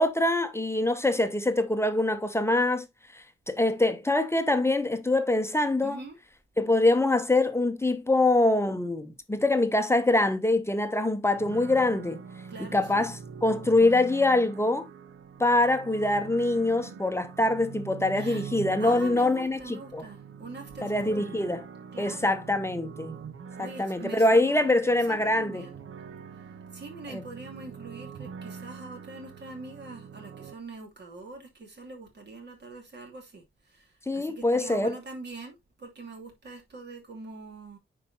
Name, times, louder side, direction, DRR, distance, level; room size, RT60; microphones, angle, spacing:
voice 1, 0.0-2.9 3.1-6.0 6.6-12.2 12.6-14.9 15.4-20.1 20.8-21.6 22.0-23.2 23.6-25.7 27.1-27.2 34.1-35.0, left 2 dB, 10° left, 0.7 m, -24 dB
voice 2, 5.8-6.2 12.5-13.1 18.2-18.5 18.8-21.4 21.9-22.5 23.6-25.8 26.7-37.8, right 3 dB, 55° right, 2.8 m, -43 dB
sound 1, 11.3-30.5, right 6 dB, 80° right, 0.9 m, -44 dB
9.6 x 4.7 x 2.8 m
wide cardioid pair, 130°, 21 cm